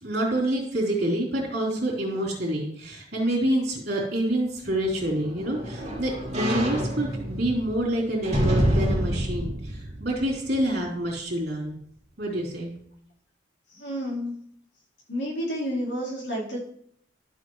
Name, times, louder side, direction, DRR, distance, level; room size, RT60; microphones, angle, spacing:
voice 1, 0.0-11.8 12.2-12.7, right 1 dB, 55° right, -2 dB, 3.8 m, -27 dB
sound 1, 4.6-10.9 11.4-11.5, equal, 35° right, 2.3 m, -28 dB
voice 2, 13.7-14.4 15.1-16.6, equal, 70° left, -5 dB, 4.1 m, -30 dB
12.0 x 8.0 x 3.2 m, 0.65 s
head